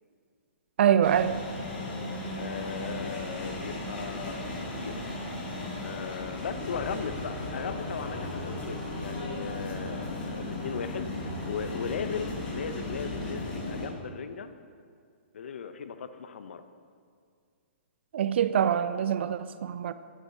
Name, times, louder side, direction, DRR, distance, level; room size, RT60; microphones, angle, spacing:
voice 1, 0.8-1.4 18.1-19.9, right 9 dB, 65° right, 0.3 m, -24 dB
sound 1, 1.0-13.9, left 1 dB, 45° left, 2.1 m, -36 dB
voice 2, 2.3-5.1 5.8-14.5 15.3-16.6, left 6 dB, 70° left, 0.5 m, -37 dB
11.0 x 7.3 x 2.6 m
hypercardioid pair, 135°, 7 cm